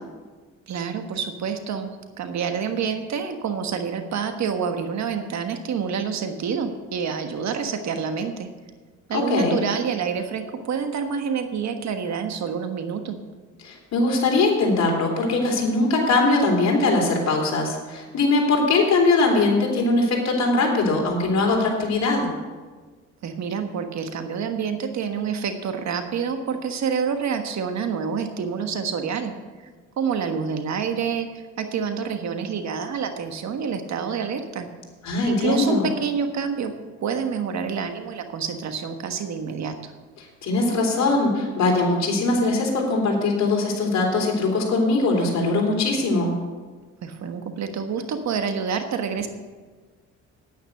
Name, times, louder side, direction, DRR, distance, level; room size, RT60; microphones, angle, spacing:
voice 1, 0.7-8.5 9.1-13.2 23.2-29.3 30.0-34.7 35.3-36.7 37.0-39.9 47.0-49.3, right 6 dB, 65° right, 7 dB, 1.4 m, -27 dB
voice 2, 9.1-9.6 13.6-22.3 35.0-35.9 40.2-46.3, left 3 dB, 60° left, 0 dB, 3.6 m, -21 dB
9.7 x 9.5 x 6.6 m, 1.4 s
cardioid pair, 90°, 30 cm